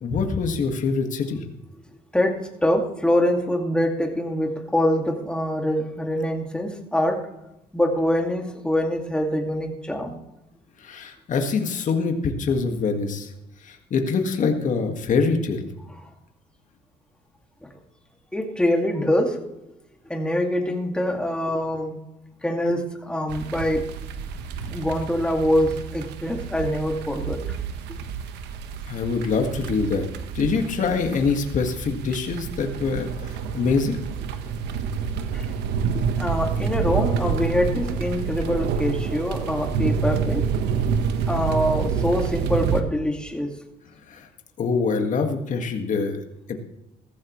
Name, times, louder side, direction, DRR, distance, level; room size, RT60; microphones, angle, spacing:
voice 1, 0.0-1.4 10.8-13.3 13.6-15.6 28.9-30.1 30.3-34.0 44.1-44.3 44.6-46.6, left 4 dB, 50° left, 4 dB, 1.9 m, -24 dB
voice 2, 2.1-7.3 7.7-10.2 18.3-19.4 20.1-21.9 22.4-23.9 24.7-27.6 35.3-35.5 35.9-40.5 41.3-43.5, left 1 dB, 5° left, 2 dB, 2.2 m, -24 dB
sound 1, 23.3-42.8, right 6 dB, 85° right, 1.2 m, -28 dB
15.0 x 14.5 x 3.2 m, 0.90 s
cardioid pair, 110°, 17 cm